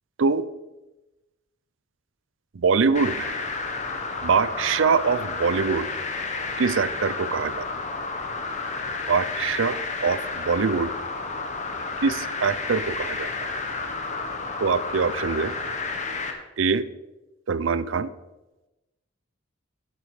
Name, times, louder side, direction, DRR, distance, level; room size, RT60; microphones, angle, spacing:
voice 1, 2.5-3.3 4.2-5.9 6.6-7.7 9.1-10.9 12.0-13.5 14.6-15.5 16.6-16.9 17.5-18.1, right 5 dB, 75° right, 17 dB, 0.5 m, -23 dB
sound 1, 2.9-16.3, left 4 dB, 40° left, 1.2 m, -31 dB
11.0 x 8.6 x 4.9 m, 1.1 s
head